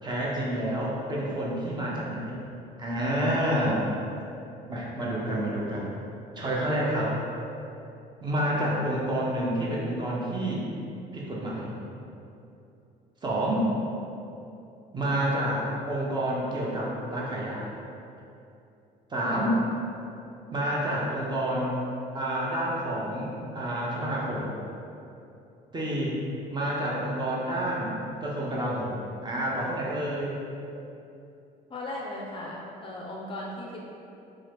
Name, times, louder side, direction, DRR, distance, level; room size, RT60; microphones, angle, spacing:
voice 1, 0.0-2.4 2.8-3.9 4.7-5.9 6.4-7.2 8.2-10.7 11.1-11.8 13.2-13.7 14.9-17.7 19.1-19.6 20.5-21.9 22.1-24.5 25.7-26.2 26.5-30.4, right 1 dB, 25° right, -5 dB, 0.6 m, -29 dB
voice 2, 31.7-33.8, left 1 dB, 30° left, -2 dB, 0.4 m, -37 dB
2.8 x 2.4 x 3.2 m, 2.7 s
cardioid pair, 110°, 17 cm